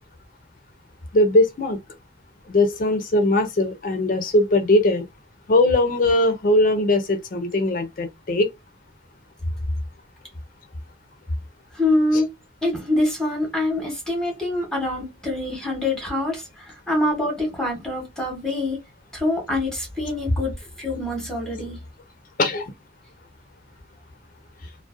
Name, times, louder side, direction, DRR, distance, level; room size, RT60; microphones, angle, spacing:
voice 1, 1.1-1.8 2.5-5.0 5.5-8.5 22.4-22.7, left 1 dB, 45° left, 0.4 m, -20 dB
voice 2, 11.7-12.3 12.6-18.8 19.1-20.5 20.8-21.8, left 1 dB, 5° left, 0.8 m, -25 dB
2.5 x 2.0 x 2.4 m
head